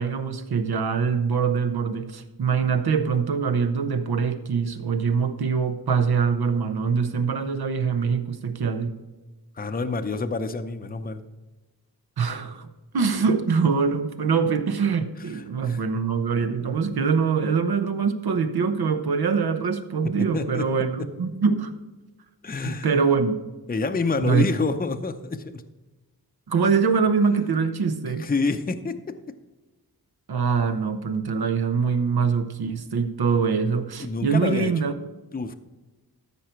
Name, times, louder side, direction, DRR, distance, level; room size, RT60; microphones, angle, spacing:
voice 1, 0.0-9.0 12.2-12.7 12.9-21.7 22.6-23.4 24.2-24.4 26.5-28.3 30.3-34.9, right 5 dB, 75° right, 8 dB, 1.0 m, -24 dB
voice 2, 9.5-11.3 15.2-15.8 20.2-20.7 21.0-21.1 22.4-22.9 23.7-25.6 28.1-29.4 34.0-34.7 35.3-35.5, left 4 dB, 25° left, 8 dB, 0.6 m, -28 dB
13.5 x 5.4 x 4.5 m, 1.2 s
wide cardioid pair, 95°, 38 cm